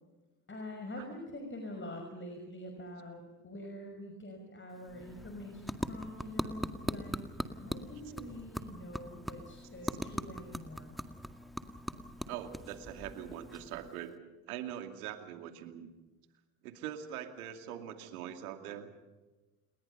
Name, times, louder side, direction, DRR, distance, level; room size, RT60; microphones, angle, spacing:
voice 1, 0.5-11.0, left 1 dB, 25° left, 3 dB, 5.8 m, -45 dB
sound 1, 4.7-14.1, equal, ahead, 2.0 m, -41 dB
voice 2, 12.3-14.1 14.5-15.9 16.6-18.9, right 10 dB, 90° right, 6 dB, 2.6 m, -42 dB
29.5 x 21.5 x 5.6 m, 1.1 s
hypercardioid pair, 65°, 43 cm